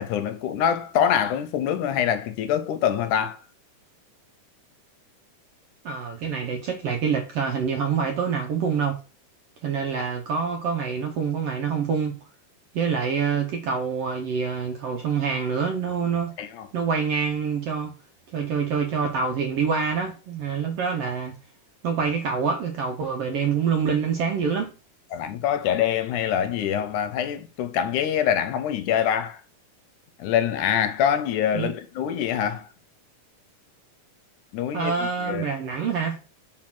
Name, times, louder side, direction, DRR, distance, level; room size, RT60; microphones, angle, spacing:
voice 1, 0.0-3.4 16.4-16.7 25.1-29.4 30.2-32.7 34.5-35.5, left 9 dB, 80° left, 2.1 m, -25 dB
voice 2, 5.8-9.0 9.6-12.1 12.7-16.3 16.7-17.9 18.3-21.3 21.8-24.7 31.5-31.7 34.7-36.2, right 6 dB, 75° right, 1.4 m, -26 dB
4.7 x 4.4 x 5.9 m
omnidirectional pair, 3.6 m